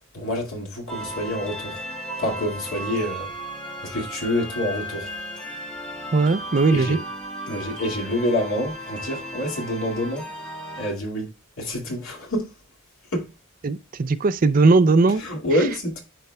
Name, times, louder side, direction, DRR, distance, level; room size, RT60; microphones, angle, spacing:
voice 1, 0.1-1.8 2.2-3.3 3.9-5.1 6.7-7.0 7.5-10.3 10.8-11.3 11.6-12.5 13.1-13.3 15.2-16.0, left 1 dB, 85° left, 2.1 m, -27 dB
sound 1, 0.9-10.9, right 1 dB, 5° left, 1.6 m, -35 dB
voice 2, 6.1-7.0 13.6-15.2, right 3 dB, 40° right, 0.4 m, -18 dB
10.0 x 4.2 x 2.2 m
head